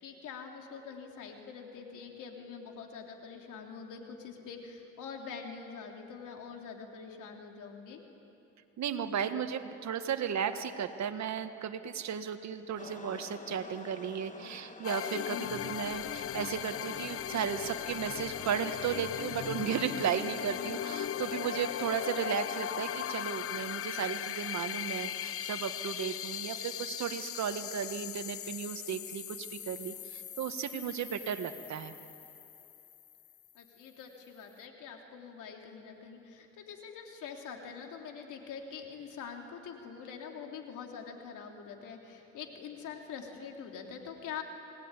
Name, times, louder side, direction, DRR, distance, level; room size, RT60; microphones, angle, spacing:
voice 1, 0.0-8.0 33.5-44.4, left 6 dB, 85° left, 2 dB, 3.3 m, -45 dB
voice 2, 8.8-31.9, right 8 dB, 65° right, 8 dB, 1.6 m, -35 dB
sound 1, 12.8-24.3, left 3 dB, 25° left, 1.4 m, -52 dB
sound 2, 14.8-33.3, left 10 dB, 50° left, 0.6 m, -38 dB
27.5 x 19.5 x 9.8 m, 2.9 s
cardioid pair, 90°, 30 cm